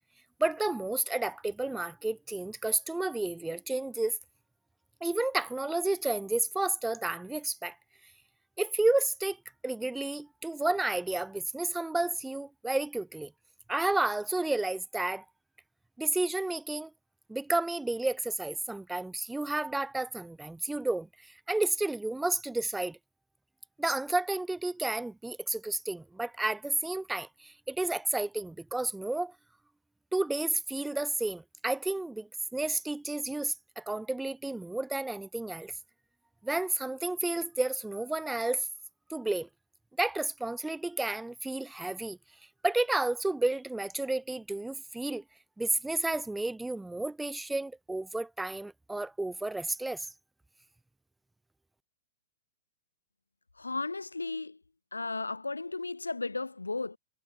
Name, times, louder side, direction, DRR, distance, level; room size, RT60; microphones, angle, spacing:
voice 1, 0.4-4.2 5.0-7.8 8.6-9.4 9.6-13.3 13.7-15.2 16.0-16.9 17.3-23.0 23.8-29.3 30.1-35.7 36.4-38.7 39.1-39.5 40.0-42.2 42.6-45.2 45.6-50.1, right 2 dB, 5° right, 2.3 m, -31 dB
voice 2, 53.6-54.6 54.9-57.0, left 3 dB, 85° left, 0.5 m, -34 dB
figure-of-eight pair, 105°, 0 cm